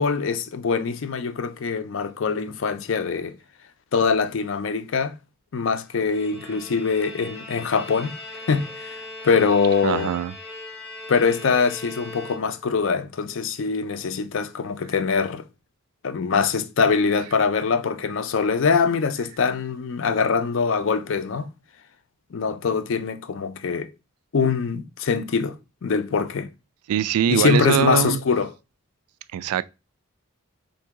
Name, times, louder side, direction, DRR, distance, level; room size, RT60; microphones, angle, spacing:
voice 1, 0.0-3.4 3.9-5.2 5.5-8.2 8.5-10.1 11.1-15.4 16.0-21.5 22.3-23.9 24.3-25.6 25.8-26.5 27.3-28.5, left 5 dB, 60° left, 0.4 m, -23 dB
Bowed string instrument, 5.9-12.9, left 2 dB, 5° left, 0.8 m, -40 dB
voice 2, 9.8-10.4 26.9-28.2 29.3-29.6, right 9 dB, 90° right, 0.3 m, -22 dB
3.7 x 2.6 x 4.6 m
head